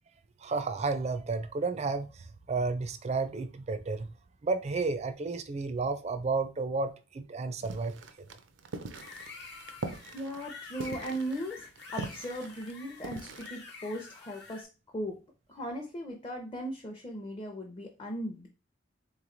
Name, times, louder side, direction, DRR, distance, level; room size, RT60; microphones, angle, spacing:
voice 1, 0.4-4.1 4.4-8.0, right 3 dB, 35° right, 0.4 m, -32 dB
sound 1, 7.6-13.5, right 3 dB, 90° right, 0.6 m, -42 dB
sound 2, 8.9-14.6, left 4 dB, 60° left, 1.0 m, -48 dB
voice 2, 9.4-9.8 10.1-11.7 11.9-14.7 14.9-15.2 15.5-18.5, equal, 25° left, 0.6 m, -38 dB
3.6 x 3.1 x 3.8 m
head